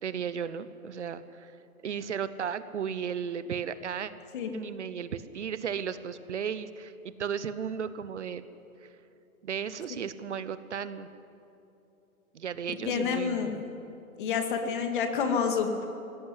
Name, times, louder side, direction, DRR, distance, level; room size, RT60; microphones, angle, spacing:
voice 1, 0.0-1.5 1.8-4.1 4.5-8.4 8.8-8.9 9.4-11.1 12.3-13.6, right 7 dB, 50° right, 14 dB, 1.1 m, -35 dB
voice 2, 12.9-13.6 14.2-15.9, left 6 dB, 35° left, 5 dB, 2.3 m, -28 dB
21.0 x 17.5 x 9.9 m, 2.9 s
hypercardioid pair, 155°, 44 cm